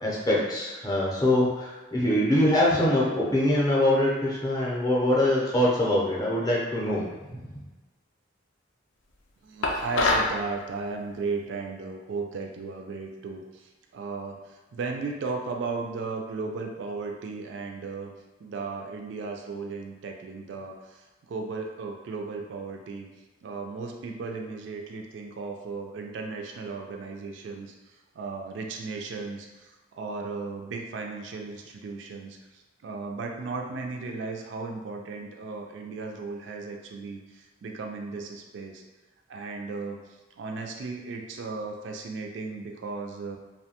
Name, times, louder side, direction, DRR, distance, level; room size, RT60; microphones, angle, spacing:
voice 1, 0.0-7.5, left 1 dB, 20° left, -6 dB, 0.5 m, -24 dB
voice 2, 9.4-18.1 18.4-23.1 23.4-38.8 39.3-40.0 40.4-43.4, right 4 dB, 65° right, 2 dB, 0.3 m, -36 dB
sound 1, 9.6-10.4, left 2 dB, 75° left, 0.4 m, -24 dB
2.6 x 2.1 x 2.8 m, 1.2 s
head